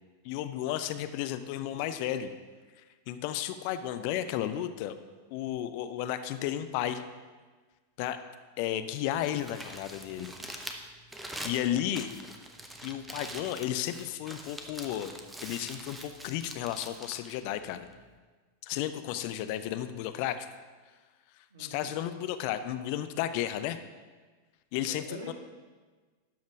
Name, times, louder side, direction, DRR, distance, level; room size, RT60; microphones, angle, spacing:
voice 1, 0.2-2.3 3.1-5.0 5.3-7.0 8.0-8.2 8.6-10.3 11.4-12.1 12.8-15.1 15.4-17.9 18.6-20.5 21.6-23.8 24.7-25.3, left 12 dB, 45° left, 10 dB, 0.6 m, -33 dB
Crumpling crinkling, 9.1-18.2, right 1 dB, 5° right, 0.9 m, -44 dB
voice 2, 21.5-21.9 24.9-25.3, right 2 dB, 65° right, 1 dB, 1.9 m, -44 dB
12.0 x 5.2 x 6.0 m, 1.4 s
figure-of-eight pair, 90°, 0 cm